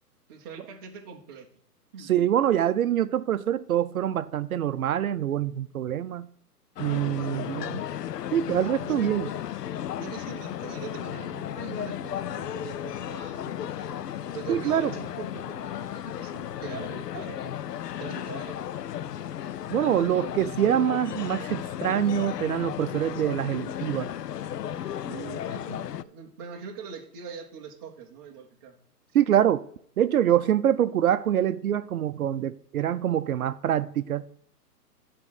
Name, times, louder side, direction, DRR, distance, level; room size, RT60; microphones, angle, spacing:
voice 1, 0.3-1.5 1.9-2.1 7.2-7.8 8.8-9.1 10.0-17.6 18.0-18.8 25.0-28.8, right 6 dB, 15° right, 0.5 m, -42 dB
voice 2, 2.0-6.3 6.8-7.8 8.3-9.3 14.5-14.9 19.7-24.1 29.1-29.6 30.0-34.2, right 10 dB, 65° right, 0.6 m, -25 dB
sound 1, 6.8-26.0, left 10 dB, 85° left, 0.6 m, -35 dB
10.5 x 3.7 x 6.2 m
hypercardioid pair, 140°, 47 cm